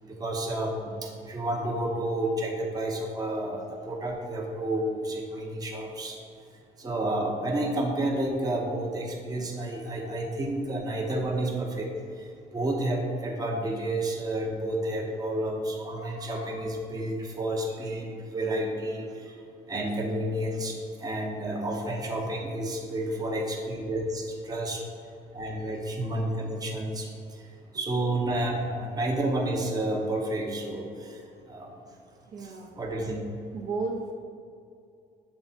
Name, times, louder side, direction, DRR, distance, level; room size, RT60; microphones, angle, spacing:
voice 1, 0.0-6.2 6.8-12.3 12.5-19.4 19.7-24.8 25.3-27.1 27.4-27.5 27.7-31.2 31.5-31.7 32.4-33.2, right 1 dB, 20° right, 0 dB, 0.9 m, -30 dB
voice 2, 32.3-32.8 33.5-34.1, right 4 dB, 55° right, 0 dB, 0.8 m, -35 dB
6.8 x 3.4 x 4.1 m, 2.4 s
cardioid pair, 110°, 17 cm